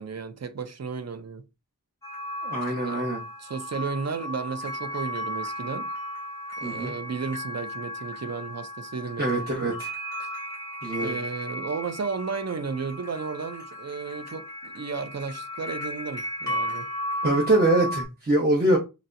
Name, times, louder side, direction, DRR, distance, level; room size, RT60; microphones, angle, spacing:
voice 1, 0.0-1.4 2.7-3.0 3.4-5.9 6.6-9.8 10.2-10.3 11.0-16.9, right 5 dB, 50° right, 0.5 m, -34 dB
sound 1, 2.0-18.0, equal, 10° left, 1.9 m, -35 dB
voice 2, 2.4-3.2 6.6-6.9 9.2-9.9 10.8-11.2 17.2-18.8, right 1 dB, 25° right, 0.9 m, -24 dB
4.1 x 2.1 x 2.5 m
wide cardioid pair, 45°, 35 cm